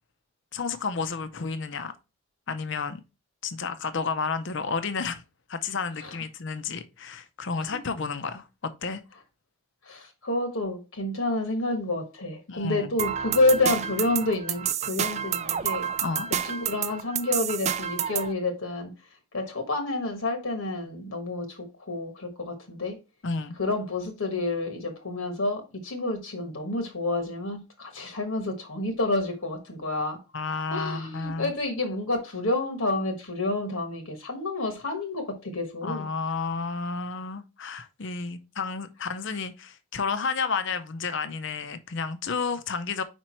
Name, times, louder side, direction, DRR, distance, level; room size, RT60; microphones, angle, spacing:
voice 1, 0.5-1.9 2.5-3.0 3.4-5.2 5.5-9.0 12.5-12.9 16.0-16.3 23.2-23.6 30.3-31.5 35.8-43.0, left 4 dB, 55° left, 0.6 m, -31 dB
voice 2, 9.8-15.9 16.4-18.9 19.3-23.0 23.6-30.2 30.7-36.1, left 2 dB, 70° left, 1.2 m, -29 dB
sound 1, 13.0-18.3, right 9 dB, 30° right, 0.3 m, -29 dB
5.1 x 4.5 x 4.3 m
head